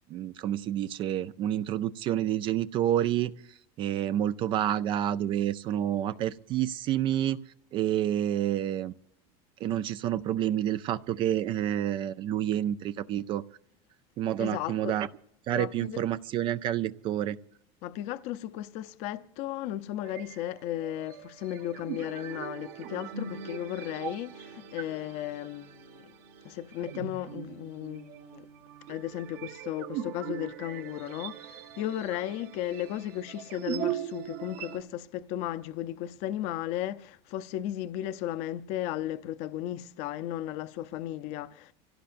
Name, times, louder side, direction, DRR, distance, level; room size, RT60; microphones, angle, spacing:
voice 1, 0.1-3.3 3.8-7.4 7.7-8.9 9.6-13.4 14.2-15.1 15.5-17.4, right 11 dB, 35° right, 0.5 m, -29 dB
voice 2, 14.4-15.0 15.5-16.0 17.8-26.1 26.4-28.5 28.9-41.7, left 12 dB, 50° left, 0.7 m, -35 dB
sound 1, 20.0-34.8, right 9 dB, 55° right, 1.4 m, -40 dB
26.5 x 17.0 x 2.6 m
cardioid pair, 160°, 14 cm